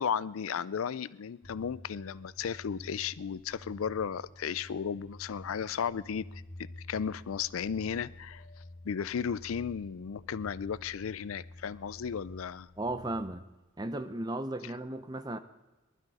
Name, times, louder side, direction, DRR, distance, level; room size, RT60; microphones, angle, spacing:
voice 1, 0.0-8.4 8.8-12.7 14.6-14.7, left 7 dB, 80° left, 0.4 m, -35 dB
sound 1, 1.4-13.3, left 1 dB, 55° left, 5.9 m, -50 dB
voice 2, 12.8-13.4 13.8-15.4, right 1 dB, 20° right, 0.7 m, -35 dB
19.5 x 12.0 x 4.9 m
head